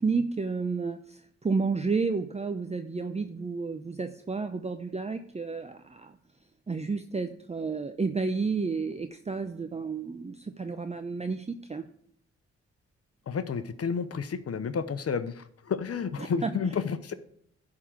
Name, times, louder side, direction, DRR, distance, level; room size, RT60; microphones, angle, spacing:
voice 1, 0.0-6.1 6.7-11.8 16.4-16.5, right 4 dB, 20° right, 8 dB, 0.6 m, -31 dB
voice 2, 13.3-17.1, left 6 dB, 55° left, 12 dB, 0.8 m, -31 dB
11.0 x 3.8 x 7.3 m, 0.69 s
supercardioid pair, 50°, 29 cm